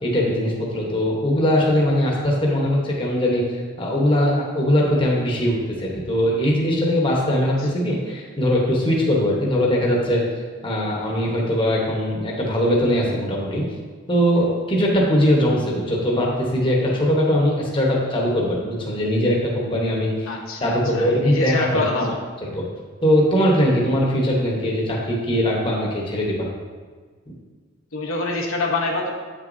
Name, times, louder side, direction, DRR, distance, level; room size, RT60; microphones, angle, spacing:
voice 1, 0.0-3.4 3.8-10.2 10.6-13.6 14.1-20.3 20.6-22.1 22.4-22.6 23.0-26.5, equal, 25° left, -3 dB, 1.0 m, -21 dB
voice 2, 20.3-22.2 27.9-29.1, left 2 dB, 80° left, -1 dB, 0.9 m, -25 dB
8.5 x 6.1 x 2.6 m, 1.5 s
head